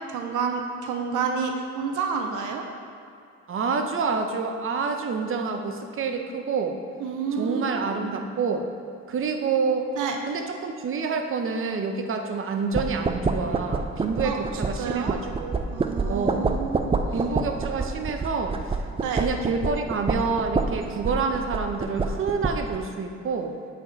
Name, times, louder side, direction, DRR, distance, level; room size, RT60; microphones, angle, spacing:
voice 1, 0.0-2.6 7.0-8.2 10.0-10.2 14.2-14.4 14.8-15.1 15.7-17.3 19.0-19.2, right 5 dB, 85° right, 3 dB, 0.8 m, -29 dB
voice 2, 3.5-6.8 7.4-8.7 9.1-9.9 10.3-15.8 16.1-16.5 17.1-18.6 19.2-23.6, right 4 dB, 45° right, 5 dB, 0.8 m, -28 dB
sound 1, 12.7-22.8, right 4 dB, 20° right, 0.4 m, -28 dB
8.2 x 4.2 x 4.5 m, 2.5 s
cardioid pair, 90°, 30 cm